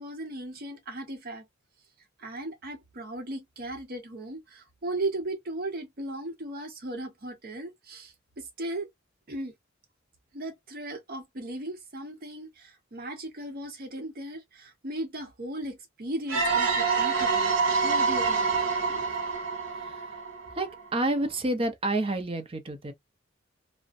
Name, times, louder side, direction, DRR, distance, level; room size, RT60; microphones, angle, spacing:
voice 1, 0.0-1.5 2.2-8.9 9.3-9.5 10.3-17.5 17.8-19.1, right 1 dB, 50° right, 0.8 m, -37 dB
sound 1, 16.3-20.9, right 4 dB, 85° right, 0.8 m, -26 dB
voice 2, 20.5-22.9, right 2 dB, 30° right, 0.5 m, -29 dB
2.4 x 2.1 x 2.5 m
head